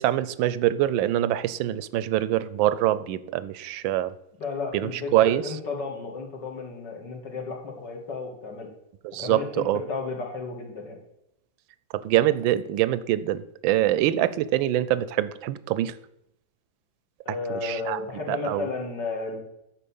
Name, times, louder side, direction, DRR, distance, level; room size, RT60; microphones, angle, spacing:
voice 1, 0.0-4.1 4.7-5.4 9.0-9.8 12.0-15.9 17.6-18.0 18.3-18.7, right 13 dB, 90° right, 15 dB, 1.3 m, -24 dB
voice 2, 4.4-8.7 9.2-11.0 17.3-19.4, left 4 dB, 65° left, 0 dB, 2.5 m, -33 dB
10.0 x 4.6 x 7.0 m, 0.81 s
omnidirectional pair, 2.0 m